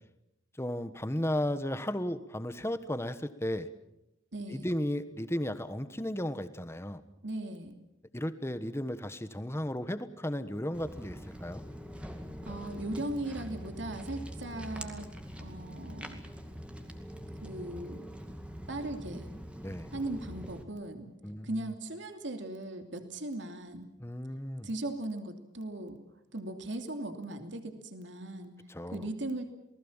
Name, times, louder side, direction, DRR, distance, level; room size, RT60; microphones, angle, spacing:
voice 1, 0.6-3.7 4.5-7.0 8.1-11.6 19.6-19.9 21.2-21.7 24.0-24.7 28.7-29.1, left 1 dB, 15° left, 11 dB, 1.3 m, -34 dB
voice 2, 4.3-4.7 7.2-7.7 12.5-15.1 15.4-16.2 17.4-18.0 18.7-19.3 19.9-21.1 21.4-23.9 24.6-26.0 26.3-28.5 28.9-29.5, right 1 dB, 60° right, 6 dB, 2.9 m, -38 dB
Walk footsteps, 10.7-20.6, equal, 5° right, 2.3 m, -44 dB
28.5 x 19.5 x 7.4 m, 0.85 s
head